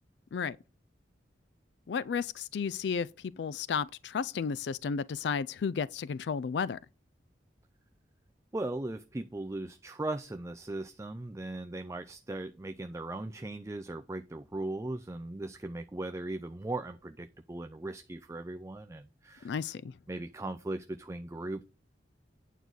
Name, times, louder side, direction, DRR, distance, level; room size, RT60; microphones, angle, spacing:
voice 1, 1.9-6.8 19.4-19.9, left 6 dB, 70° left, 0.4 m, -33 dB
voice 2, 8.5-19.6 20.1-21.6, right 2 dB, 15° right, 0.4 m, -38 dB
9.2 x 4.0 x 6.1 m
head